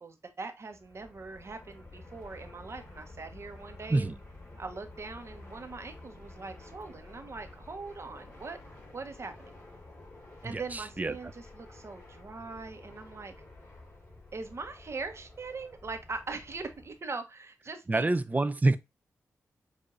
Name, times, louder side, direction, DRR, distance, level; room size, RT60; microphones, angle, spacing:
voice 1, 0.0-4.1 4.6-8.6 8.9-9.3 10.4-13.3 14.3-18.1, right 3 dB, 50° right, 1.2 m, -41 dB
Fixed-wing aircraft airplane, 0.7-17.1, left 2 dB, 35° left, 2.8 m, -51 dB
voice 2, 10.4-11.2 17.9-18.8, right 2 dB, 30° right, 0.6 m, -27 dB
6.7 x 2.8 x 2.6 m
cardioid pair, 65°, 6 cm